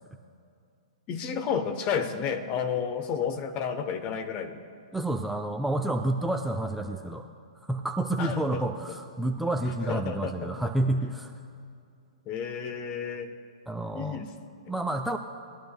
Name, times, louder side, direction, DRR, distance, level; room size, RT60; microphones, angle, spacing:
voice 1, 1.1-4.6 8.2-9.0 9.9-10.5 12.3-13.3 14.0-14.3, left 7 dB, 35° left, 8 dB, 0.9 m, -31 dB
voice 2, 4.9-7.3 7.6-11.3 13.7-14.2 14.7-15.2, right 1 dB, 5° right, 4 dB, 0.4 m, -29 dB
20.0 x 11.5 x 2.2 m, 2.5 s
figure-of-eight pair, 115°, 3 cm